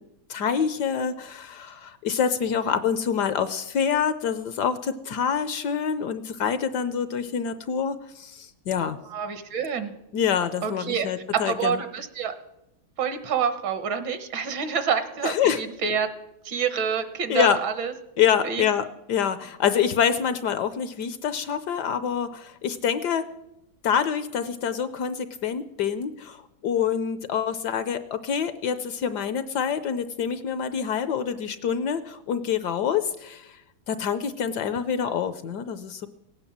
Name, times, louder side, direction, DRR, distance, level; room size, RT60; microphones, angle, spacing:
voice 1, 0.3-9.0 10.1-11.8 15.2-15.6 17.3-17.6 18.2-23.2 23.8-33.5 33.9-36.1, left 7 dB, 70° left, 12 dB, 1.1 m, -26 dB
voice 2, 9.0-9.9 10.6-11.1 11.3-12.3 13.0-16.1 16.4-18.6, right 6 dB, 70° right, 10 dB, 1.9 m, -27 dB
17.5 x 9.0 x 7.2 m, 0.87 s
omnidirectional pair, 2.2 m